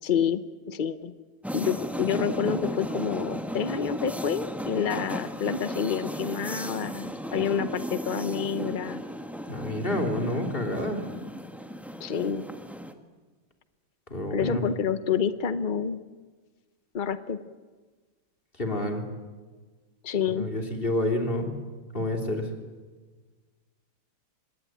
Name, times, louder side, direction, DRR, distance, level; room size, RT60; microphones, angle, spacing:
voice 1, 0.0-0.4 0.7-1.1 1.5-9.0 12.0-12.4 14.3-16.0 16.9-17.5 20.0-20.5, left 7 dB, 75° left, 12 dB, 0.4 m, -28 dB
sound 1, 1.4-12.9, equal, ahead, 1.1 m, -35 dB
voice 2, 9.5-11.0 14.1-14.6 18.6-19.0 20.3-21.5 21.9-22.5, left 1 dB, 25° left, 3 dB, 3.4 m, -28 dB
26.0 x 19.5 x 9.4 m, 1.4 s
omnidirectional pair, 2.2 m